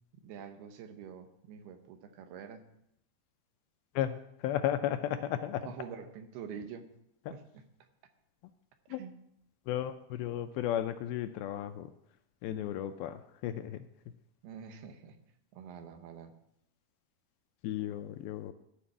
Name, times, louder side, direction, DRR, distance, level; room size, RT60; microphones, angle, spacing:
voice 1, 0.1-2.6 5.6-6.9 7.3-7.6 9.0-9.1 14.4-15.2 15.5-16.3, right 7 dB, 80° right, 7 dB, 2.8 m, -46 dB
voice 2, 4.0-5.7 8.9-9.0 9.7-11.9 12.4-13.9 17.6-18.5, left 11 dB, 80° left, 8 dB, 2.2 m, -34 dB
13.0 x 5.1 x 7.1 m, 0.77 s
omnidirectional pair, 4.6 m